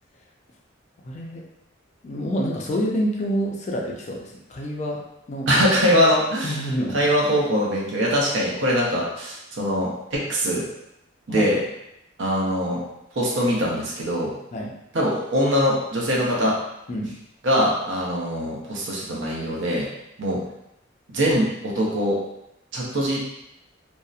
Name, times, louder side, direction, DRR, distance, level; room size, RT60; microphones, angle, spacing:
voice 1, 1.0-1.4 2.0-5.0 5.3-5.5 5.9-6.1 6.4-7.0 11.3-11.5 14.5-14.7 16.9-17.1, equal, 35° left, -1 dB, 0.4 m, -27 dB
voice 2, 5.5-6.7 6.9-10.6 11.3-11.6 12.2-12.8 13.1-14.3 14.9-16.6 17.4-19.9 20.2-20.4 21.1-22.2 22.7-23.2, equal, 60° right, -3 dB, 0.6 m, -22 dB
2.7 x 2.0 x 2.4 m, 0.83 s
head